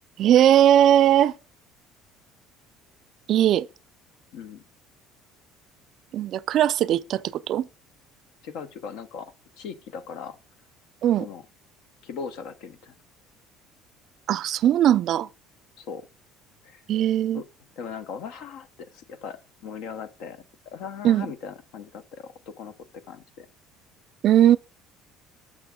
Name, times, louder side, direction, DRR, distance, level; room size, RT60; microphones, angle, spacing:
voice 1, 0.2-1.3 3.3-3.7 6.1-7.7 11.0-11.3 14.3-15.3 16.9-17.4 21.0-21.3 24.2-24.6, right 11 dB, 50° right, 0.3 m, -19 dB
voice 2, 4.3-4.6 8.4-10.4 11.2-11.4 12.0-12.9 15.8-16.1 16.6-16.8 17.3-17.4 17.8-18.7 18.9-20.4 20.7-22.7 23.1-23.5, left 6 dB, 65° left, 0.7 m, -38 dB
6.9 x 6.0 x 3.6 m
cardioid pair, 145°, 0 cm